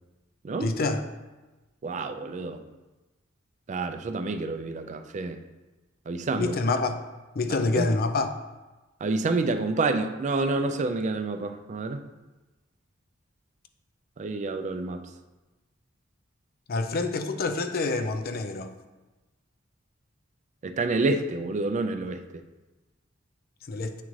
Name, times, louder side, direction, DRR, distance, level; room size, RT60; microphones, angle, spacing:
voice 1, 0.6-1.0 6.4-7.0 7.4-8.3 16.7-18.7 23.7-24.0, left 3 dB, 50° left, 7 dB, 0.4 m, -27 dB
voice 2, 1.8-2.6 3.7-5.4 6.1-6.6 7.8-7.9 9.0-12.0 14.2-15.0 20.6-22.2, right 3 dB, 35° right, 8 dB, 0.4 m, -28 dB
8.3 x 3.7 x 3.1 m, 1.1 s
head